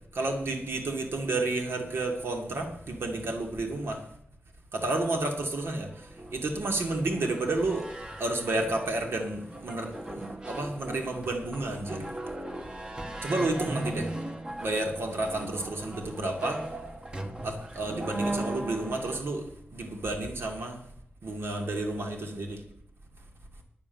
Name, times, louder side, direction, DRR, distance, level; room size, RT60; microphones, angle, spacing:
voice 1, 0.1-4.0 4.7-7.9 8.2-12.1 13.2-14.1 14.6-16.6 17.4-19.5 19.7-20.8 21.2-22.6, right 2 dB, 70° right, 2 dB, 2.3 m, -31 dB
sound 1, 5.9-19.2, right 1 dB, 20° right, 1.2 m, -38 dB
10.0 x 9.1 x 7.1 m, 0.67 s
wide cardioid pair, 170°, 4 cm